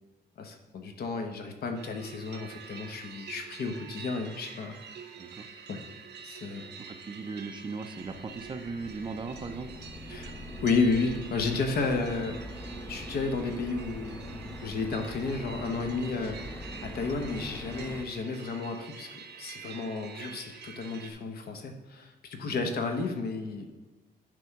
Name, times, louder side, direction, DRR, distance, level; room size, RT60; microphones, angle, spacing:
voice 1, 0.4-4.8 5.7-5.8 6.2-6.7 10.1-10.4 10.6-12.4 12.9-14.1 14.6-16.4 16.8-23.7, left 4 dB, 65° left, 5 dB, 1.1 m, -32 dB
sound 1, 1.7-21.1, right 6 dB, 75° right, 0.9 m, -47 dB
voice 2, 6.9-9.7 22.5-22.7, right 4 dB, 25° right, 7 dB, 0.6 m, -38 dB
sound 2, 8.0-18.0, left 1 dB, 10° left, 0.7 m, -42 dB
10.0 x 3.5 x 5.8 m, 1.3 s
cardioid pair, 135°, 18 cm